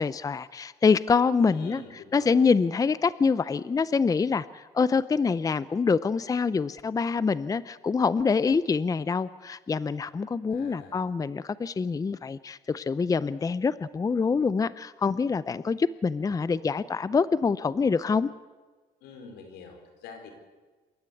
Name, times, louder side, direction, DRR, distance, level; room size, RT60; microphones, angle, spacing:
voice 1, 0.0-1.8 2.1-18.3, left 5 dB, 20° left, 17 dB, 0.6 m, -25 dB
voice 2, 1.5-2.3 10.5-11.1 19.0-20.3, left 4 dB, 90° left, 5 dB, 4.8 m, -45 dB
28.0 x 13.5 x 8.4 m, 1.3 s
cardioid pair, 110°, 17 cm